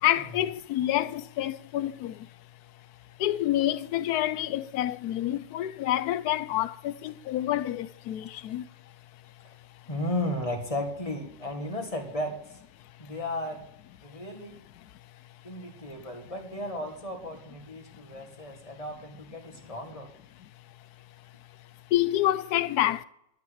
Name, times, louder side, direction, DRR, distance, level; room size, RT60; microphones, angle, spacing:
voice 1, 0.0-2.3 3.2-8.7 14.8-14.9 16.0-16.1 18.2-18.3 20.4-20.5 21.9-23.0, left 13 dB, 85° left, 1.1 m, -28 dB
voice 2, 9.9-12.6 13.0-13.6 14.0-14.6 15.4-20.1, left 1 dB, 20° left, 1.9 m, -34 dB
12.5 x 5.9 x 8.0 m
omnidirectional pair, 1.6 m